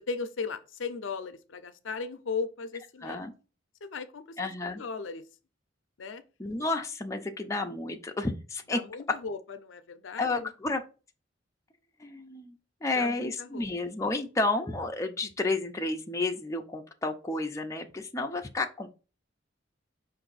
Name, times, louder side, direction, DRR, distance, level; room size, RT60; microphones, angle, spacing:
voice 1, 0.1-3.2 3.8-4.4 4.7-5.2 6.0-6.2 8.7-10.5 13.0-13.6, left 4 dB, 75° left, 0.5 m, -37 dB
voice 2, 3.0-3.3 4.4-4.8 6.4-8.8 10.2-10.8 12.0-18.9, left 2 dB, 15° left, 0.5 m, -31 dB
4.9 x 2.6 x 4.0 m
head